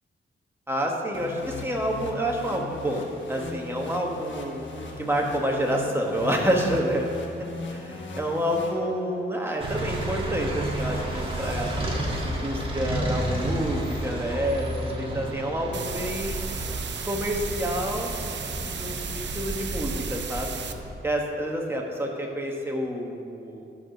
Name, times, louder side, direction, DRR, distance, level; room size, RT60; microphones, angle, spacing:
voice 1, 0.7-4.6 5.0-7.1 7.7-11.7 12.2-16.5 17.0-18.1 18.8-20.6 21.0-23.6, equal, 10° right, 0 dB, 1.2 m, -28 dB
sound 1, 1.1-9.3, left 3 dB, 75° left, 1.2 m, -38 dB
sound 2, 9.6-20.9, right 1 dB, 25° right, 1.5 m, -31 dB
sound 3, 15.7-20.7, right 7 dB, 70° right, 0.6 m, -36 dB
11.5 x 4.9 x 6.3 m, 2.6 s
wide cardioid pair, 140°, 19 cm